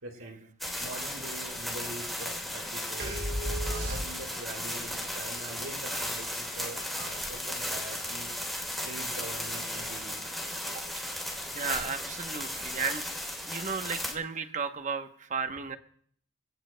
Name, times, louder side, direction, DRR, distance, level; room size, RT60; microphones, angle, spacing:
voice 1, 0.0-0.4 0.8-3.2 3.7-8.3 8.8-10.3, right 2 dB, 90° right, -1 dB, 4.3 m, -43 dB
sound 1, 0.6-14.1, left 1 dB, ahead, 3.3 m, -35 dB
sound 2, 3.0-4.5, equal, 55° right, 2.9 m, -33 dB
voice 2, 11.5-13.0 13.4-15.8, right 5 dB, 35° right, 7 dB, 0.9 m, -34 dB
27.0 x 17.5 x 2.2 m, 0.62 s
head